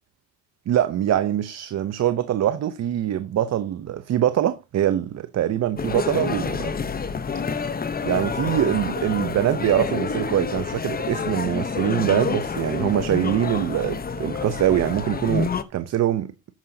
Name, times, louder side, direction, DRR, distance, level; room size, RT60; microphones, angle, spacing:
voice 1, 0.7-6.7 8.0-16.3, right 11 dB, 60° right, 0.8 m, -23 dB
sound 1, 5.8-15.6, left 5 dB, 30° left, 0.9 m, -28 dB
13.0 x 9.1 x 2.8 m
cardioid pair, 90°, 30 cm